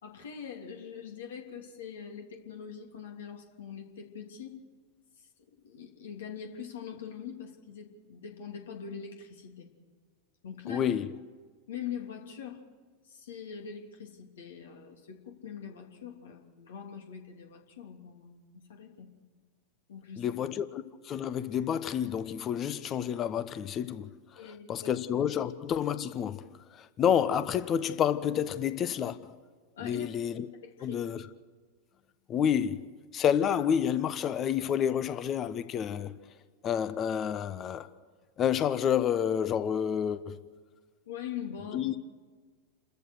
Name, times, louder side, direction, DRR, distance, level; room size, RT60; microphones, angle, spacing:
voice 1, 0.0-4.6 5.6-9.7 10.4-10.9 11.7-12.6 13.0-19.1 19.9-20.3 24.3-24.9 29.7-30.1 30.6-31.0 41.1-42.0, left 8 dB, 60° left, 3.0 m, -43 dB
voice 2, 10.7-11.1 20.2-26.5 26.7-29.3 29.8-30.5 30.8-31.2 32.3-32.8 33.1-36.2 36.6-37.9 38.4-40.4 41.7-41.9, left 9 dB, 30° left, 1.1 m, -29 dB
29.5 x 14.0 x 6.5 m
figure-of-eight pair, 90°, 0 cm